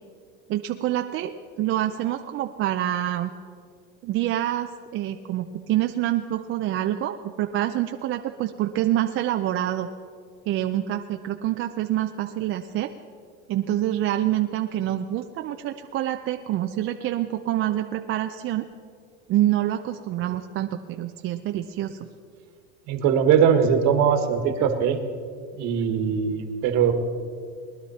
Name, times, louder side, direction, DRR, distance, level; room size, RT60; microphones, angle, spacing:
voice 1, 0.5-1.3 1.6-3.3 4.0-9.9 10.5-12.9 13.5-18.7 19.3-22.0, right 13 dB, 40° right, 6 dB, 0.5 m, -26 dB
voice 2, 22.9-25.0 25.6-26.9, right 7 dB, 55° right, 7 dB, 1.5 m, -21 dB
20.0 x 11.0 x 4.2 m, 2.2 s
supercardioid pair, 115°, 34 cm